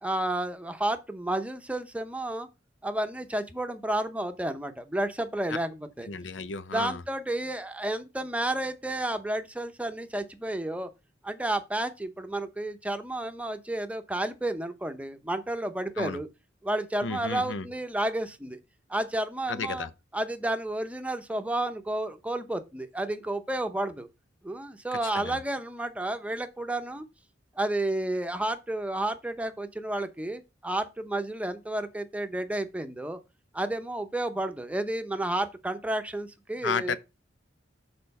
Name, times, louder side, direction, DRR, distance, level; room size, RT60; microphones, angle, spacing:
voice 1, 0.0-2.5 2.8-6.1 6.7-10.9 11.2-16.3 16.6-18.6 18.9-19.9 20.1-24.1 24.4-27.1 27.6-33.2 33.5-37.0, right 1 dB, 10° right, 0.7 m, -31 dB
voice 2, 6.1-7.0 16.0-16.2 17.0-17.7 19.5-19.9 25.1-25.4 36.6-37.0, left 5 dB, 90° left, 0.7 m, -32 dB
6.7 x 4.4 x 5.4 m
head